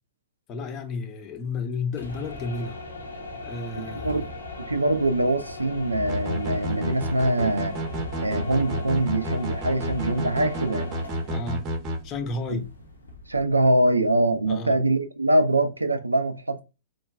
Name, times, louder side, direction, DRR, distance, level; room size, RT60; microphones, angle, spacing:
voice 1, 0.5-2.8 3.4-4.3 11.3-11.6 12.0-12.7 14.5-14.8, left 3 dB, 30° left, 0.6 m, -32 dB
sound 1, 1.9-13.7, left 2 dB, 80° left, 0.7 m, -38 dB
voice 2, 4.6-7.8 8.2-11.0 12.5-12.6 13.3-16.6, right 1 dB, 90° right, 0.3 m, -23 dB
sound 2, 6.1-12.0, right 1 dB, 35° right, 0.7 m, -30 dB
3.0 x 2.3 x 2.2 m
figure-of-eight pair, 105°, 0 cm